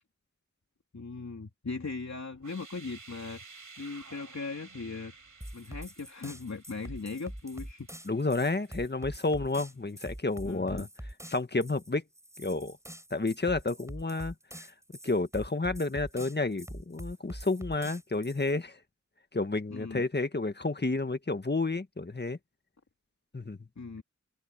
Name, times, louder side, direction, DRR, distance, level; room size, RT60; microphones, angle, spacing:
voice 1, 0.9-5.1 5.5-7.9 10.4-10.9 19.7-20.0 23.8-24.0, left 4 dB, 65° left, 3.2 m, -39 dB
sound 1, 2.4-9.2, right 4 dB, 85° right, 4.7 m, -53 dB
sound 2, 5.4-18.6, right 1 dB, 10° right, 7.1 m, -44 dB
voice 2, 8.0-10.9 11.3-12.0 12.4-12.8 13.1-14.7 15.0-18.8 19.3-22.4 23.3-23.7, left 3 dB, 35° left, 1.6 m, -31 dB
wide cardioid pair, 55°, 30 cm